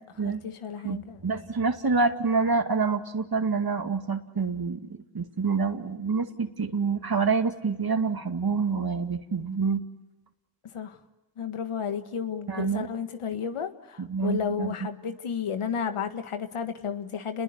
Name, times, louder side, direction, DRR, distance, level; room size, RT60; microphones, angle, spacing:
voice 1, 0.3-1.2 10.7-11.0 11.4-17.4, left 7 dB, 80° left, 1.7 m, -32 dB
voice 2, 0.8-9.8 12.5-12.9 14.0-14.7, right 4 dB, 45° right, 2.3 m, -27 dB
29.0 x 21.5 x 8.2 m
cardioid pair, 45°, 50 cm